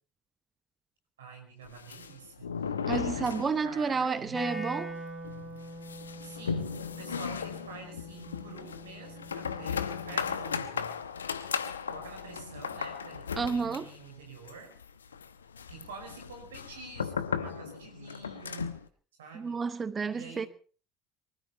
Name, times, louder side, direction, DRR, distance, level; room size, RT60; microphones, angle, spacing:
voice 1, 1.2-4.4 6.2-11.0 11.9-14.7 15.7-18.8 19.2-19.6 20.1-20.5, right 4 dB, 75° right, 4.9 m, -48 dB
sound 1, 1.6-4.0 4.3-4.4 4.7-4.8 5.2-18.9, left 6 dB, 80° left, 0.9 m, -36 dB
voice 2, 2.9-5.0 13.4-13.8 19.3-20.5, right 5 dB, 30° right, 0.9 m, -31 dB
Wind instrument woodwind instrument, 4.3-10.4, equal, 15° left, 5.9 m, -43 dB
24.0 x 13.0 x 4.2 m
figure-of-eight pair, 60°, 0 cm